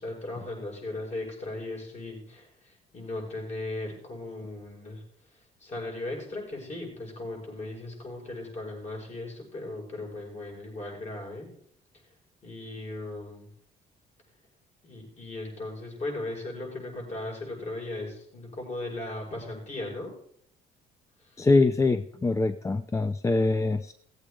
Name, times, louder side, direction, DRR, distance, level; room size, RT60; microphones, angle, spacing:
voice 1, 0.0-5.0 5.6-11.5 12.4-13.5 14.8-20.1 21.2-21.4, left 2 dB, 40° left, -1 dB, 6.4 m, -37 dB
voice 2, 21.4-23.9, left 3 dB, 20° left, 11 dB, 0.5 m, -24 dB
17.0 x 8.0 x 5.0 m, 0.65 s
cardioid pair, 110°, 17 cm